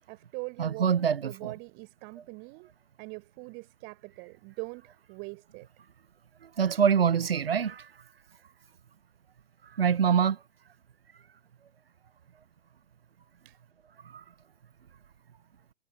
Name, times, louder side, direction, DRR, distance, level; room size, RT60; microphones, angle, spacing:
voice 1, 0.0-2.7 3.0-5.7 13.4-13.6, right 33 dB, 30° right, 5.0 m, -42 dB
voice 2, 0.6-1.5 6.6-7.9 9.8-10.4 14.1-14.2, right 7 dB, 65° right, 1.0 m, -25 dB
figure-of-eight pair, 110°, 31 cm